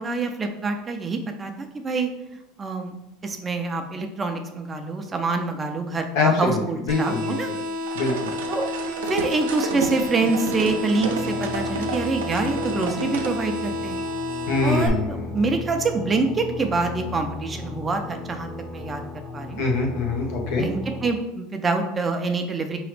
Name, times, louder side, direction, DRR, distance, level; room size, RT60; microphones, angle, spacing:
voice 1, 0.0-2.1 2.6-2.9 3.2-7.5 8.5-8.6 9.0-14.0 14.6-19.0 19.3-19.6 20.6-22.8, right 3 dB, 25° right, 5 dB, 0.6 m, -26 dB
voice 2, 6.1-6.6 6.9-7.4 7.9-8.3 14.5-15.2 19.6-20.6, left 3 dB, 70° left, 1 dB, 1.0 m, -23 dB
sound 1, 6.9-14.9, left 2 dB, 60° right, 0.9 m, -30 dB
sound 2, 7.9-13.3, right 4 dB, 90° right, 0.6 m, -31 dB
sound 3, 11.0-21.1, left 3 dB, 10° left, 0.8 m, -36 dB
4.7 x 3.0 x 3.2 m, 0.90 s
supercardioid pair, 100°, 0 cm